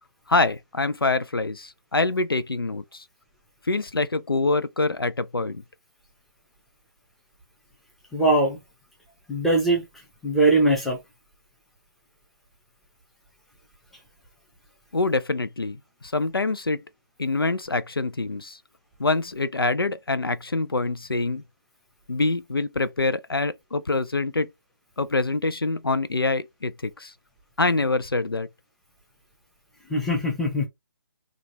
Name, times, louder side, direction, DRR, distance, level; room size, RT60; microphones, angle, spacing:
voice 1, 0.3-3.0 3.7-5.6 14.9-16.8 17.2-18.6 19.0-21.4 22.1-24.5 25.0-27.1 27.6-28.5, left 3 dB, 85° left, 0.4 m, -25 dB
voice 2, 8.1-8.6 9.3-9.8 10.2-11.0 29.9-30.7, right 2 dB, ahead, 0.7 m, -21 dB
3.6 x 2.4 x 2.8 m
figure-of-eight pair, 145°, 12 cm